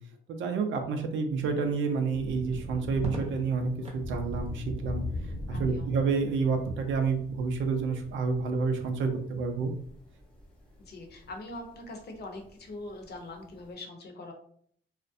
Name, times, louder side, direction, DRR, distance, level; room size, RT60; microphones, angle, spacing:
voice 1, 0.3-5.0 5.5-9.7, right 4 dB, 75° right, 5 dB, 0.5 m, -29 dB
Thunder / Rain, 1.3-13.7, left 2 dB, 5° left, 0.9 m, -42 dB
Crackle, 2.9-4.1 5.7-6.2, equal, 30° right, 0.7 m, -40 dB
voice 2, 5.5-5.9 10.8-14.3, left 2 dB, 55° left, 3 dB, 0.7 m, -43 dB
2.4 x 2.1 x 2.5 m, 0.62 s
cardioid pair, 90°, 20 cm